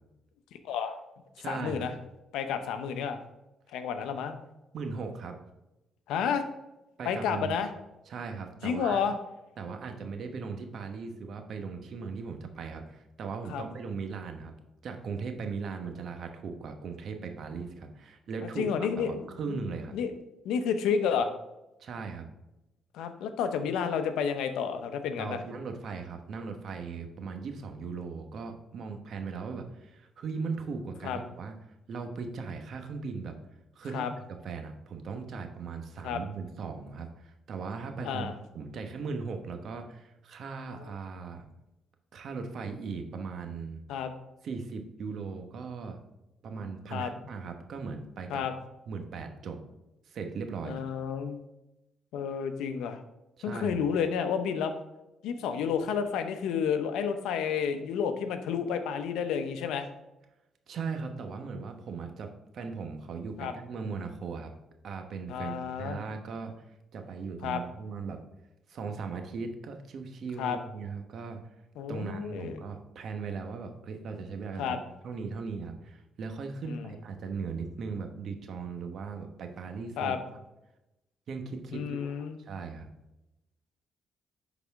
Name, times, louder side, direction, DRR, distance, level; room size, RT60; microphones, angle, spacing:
voice 1, 0.6-1.0 1.5-1.9 2.3-3.2 3.7-4.4 6.1-6.4 7.0-7.7 8.6-9.1 13.5-13.6 18.6-19.6 19.9-20.1 20.4-21.3 22.9-25.4 31.0-31.2 33.9-34.1 36.0-36.2 38.0-38.3 40.8-40.9 43.9-44.1 46.9-47.1 48.3-48.5 50.6-51.4 52.1-53.0 53.4-54.7 55.2-59.9 63.4-63.5 65.3-66.0 67.4-67.6 70.4-70.6 71.8-72.6 74.6-74.8 76.7-76.9 80.0-80.2 81.7-82.4, left 7 dB, 90° left, 8 dB, 0.8 m, -30 dB
voice 2, 1.4-1.9 4.7-5.4 7.0-7.6 8.1-9.0 9.6-14.5 14.8-19.9 21.8-22.3 25.2-31.6 31.9-33.3 33.7-41.5 42.1-43.8 44.4-46.0 46.4-48.4 48.9-49.6 50.1-50.8 53.4-53.8 60.7-64.5 64.8-66.5 66.9-68.2 68.7-71.4 71.9-74.8 75.0-80.2 81.3-82.9, right 5 dB, 60° right, 5 dB, 1.1 m, -38 dB
11.0 x 4.1 x 3.6 m, 0.95 s
cardioid pair, 90°, 0 cm